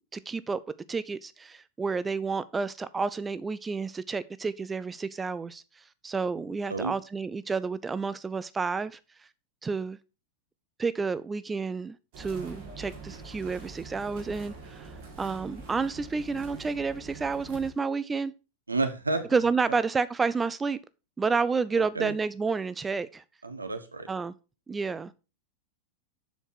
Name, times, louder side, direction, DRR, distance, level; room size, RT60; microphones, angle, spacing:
voice 1, 0.1-0.6 0.9-9.0 9.6-10.0 10.8-14.9 15.2-18.3 19.3-20.8 21.2-23.2 24.1-24.3 24.7-25.1, right 4 dB, 15° right, 0.4 m, -30 dB
sound 1, 12.1-17.7, right 4 dB, 45° right, 3.9 m, -44 dB
voice 2, 18.7-19.3 21.9-22.1 23.4-24.1, right 3 dB, 80° right, 1.2 m, -30 dB
7.6 x 6.6 x 4.4 m
figure-of-eight pair, 90°, 0 cm